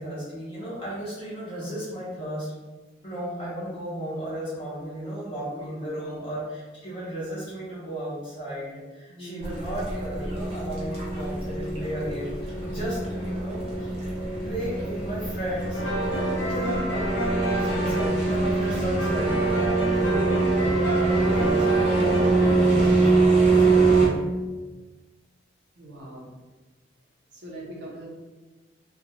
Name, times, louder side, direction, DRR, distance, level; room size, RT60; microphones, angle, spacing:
voice 1, 0.0-2.5 3.0-13.9 14.4-15.8 16.5-24.2, right 1 dB, 30° left, -10 dB, 0.8 m, -35 dB
voice 2, 9.1-9.6 16.1-16.5 25.8-26.3 27.3-28.1, right 1 dB, 75° right, -4 dB, 0.7 m, -41 dB
sound 1, 9.4-24.1, right 3 dB, 35° right, 0.7 m, -24 dB
sound 2, 15.7-22.8, right 1 dB, 85° left, 1.1 m, -29 dB
2.5 x 2.2 x 2.9 m, 1.2 s
head